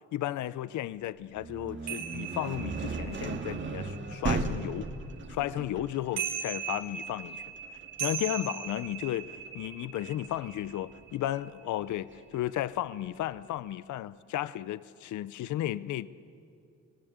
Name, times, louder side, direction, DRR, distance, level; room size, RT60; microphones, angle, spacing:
voice 1, 0.1-4.9 5.3-7.4 8.0-16.1, left 13 dB, 75° left, 0.7 m, -34 dB
sound 1, 1.4-11.1, right 4 dB, 40° right, 2.0 m, -37 dB
sound 2, 1.9-5.4 5.9-11.9 12.2-12.6, right 8 dB, 85° right, 4.6 m, -39 dB
29.5 x 18.5 x 8.1 m
cardioid pair, 90°, 30 cm